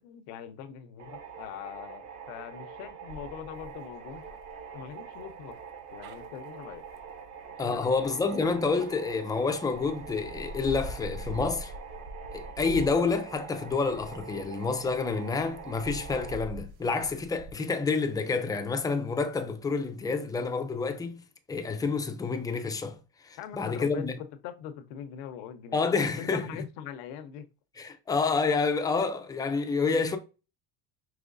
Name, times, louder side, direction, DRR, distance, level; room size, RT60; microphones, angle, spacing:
voice 1, 0.0-4.2 4.7-5.5 5.9-6.8 7.6-8.1 23.4-24.1 24.4-25.8 26.2-27.4, left 9 dB, 85° left, 0.8 m, -42 dB
sound 1, 1.0-16.4, right 6 dB, 35° right, 0.9 m, -45 dB
sound 2, 3.1-9.1 9.6-17.5, right 1 dB, 55° right, 0.8 m, -44 dB
voice 2, 7.6-11.7 12.3-21.2 21.5-23.0 23.2-24.2 25.7-26.5 27.8-30.2, left 4 dB, 10° left, 0.3 m, -28 dB
5.0 x 3.1 x 2.5 m
cardioid pair, 115°, 45 cm